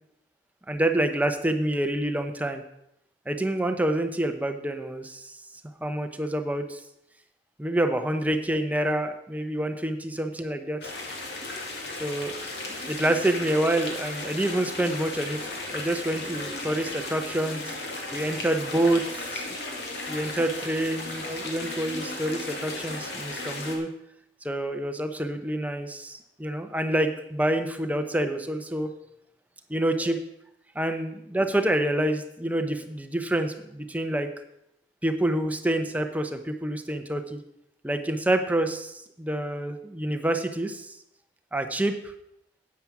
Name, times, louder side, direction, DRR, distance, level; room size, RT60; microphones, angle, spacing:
voice 1, 0.7-2.6 3.3-5.4 5.8-6.8 7.6-10.9 12.0-12.3 12.9-15.4 15.7-17.8 18.1-19.5 20.1-23.9 24.4-28.9 29.7-30.2 30.7-34.3 35.0-37.4 37.8-41.0 41.5-41.9, right 1 dB, 10° right, 6 dB, 0.8 m, -27 dB
sound 1, 10.8-23.8, left 2 dB, 65° left, 2.2 m, -35 dB
9.5 x 8.7 x 6.0 m, 0.78 s
head